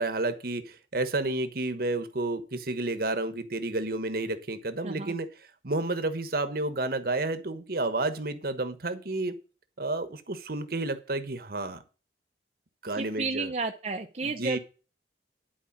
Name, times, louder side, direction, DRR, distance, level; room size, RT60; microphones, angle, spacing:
voice 1, 0.0-5.3 5.6-9.3 9.8-11.8 12.8-13.5 14.2-14.6, right 2 dB, 55° right, 1.2 m, -30 dB
voice 2, 4.8-5.2 13.0-14.6, right 3 dB, 40° right, 0.8 m, -32 dB
11.5 x 4.8 x 7.3 m
head